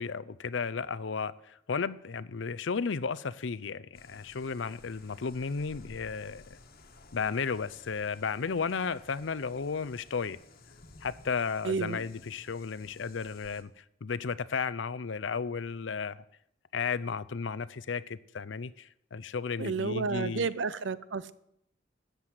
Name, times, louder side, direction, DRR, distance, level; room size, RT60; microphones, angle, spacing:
voice 1, 0.0-6.6 7.1-10.4 11.0-16.2 16.7-20.5, left 5 dB, 75° left, 0.6 m, -34 dB
sound 1, 3.9-13.6, left 3 dB, 55° left, 1.4 m, -55 dB
voice 2, 11.6-12.0 19.6-21.3, right 4 dB, 70° right, 0.7 m, -31 dB
13.0 x 8.3 x 7.7 m
head